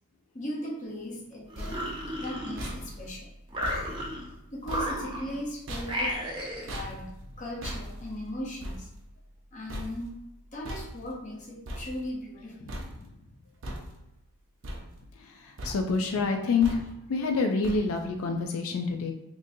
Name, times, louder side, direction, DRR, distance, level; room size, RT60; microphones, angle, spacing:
voice 1, 0.3-1.8 2.2-3.3 4.5-6.2 6.6-7.1 7.4-8.9 9.5-10.1 10.5-12.7, equal, 35° left, -2 dB, 0.7 m, -38 dB
sound 1, 1.2-12.4 12.7-13.3 13.6-14.3 14.6-15.3 15.6-16.1 16.6-17.2 17.6-18.2, equal, 65° right, 0.6 m, -41 dB
sound 2, 1.5-3.0 3.5-4.3 4.6-5.4 5.8-6.7, equal, 25° right, 0.5 m, -34 dB
voice 2, 15.4-16.8 17.1-19.1, left 4 dB, 85° left, 4 dB, 0.4 m, -27 dB
3.7 x 2.6 x 2.6 m, 0.91 s
head